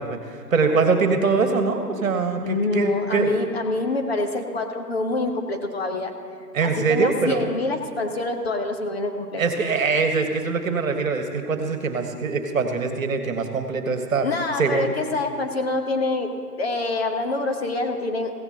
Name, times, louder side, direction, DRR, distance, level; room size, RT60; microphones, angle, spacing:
voice 1, 0.0-3.3 6.5-7.5 9.4-14.3 14.6-14.9, right 4 dB, 50° right, 6 dB, 1.4 m, -23 dB
voice 2, 2.4-6.1 6.6-9.4 14.2-16.3 16.6-18.3, left 2 dB, 40° left, 4 dB, 1.1 m, -26 dB
16.0 x 14.5 x 2.9 m, 2.1 s
figure-of-eight pair, 150°, 49 cm